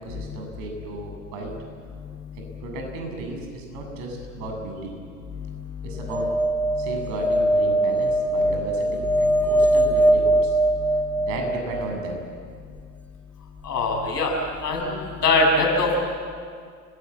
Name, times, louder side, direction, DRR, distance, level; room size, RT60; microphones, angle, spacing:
voice 1, 0.0-1.5 2.4-5.0 5.8-6.3 6.8-10.6 11.2-12.2, right 2 dB, 50° right, 2 dB, 7.7 m, -34 dB
sound 1, 6.1-12.3 14.5-14.6 14.8-14.9, right 1 dB, 5° left, 1.5 m, -22 dB
voice 2, 13.6-14.3 14.6-16.0, left 2 dB, 75° left, 1 dB, 7.5 m, -22 dB
29.5 x 21.5 x 8.6 m, 2.1 s
figure-of-eight pair, 90°, 48 cm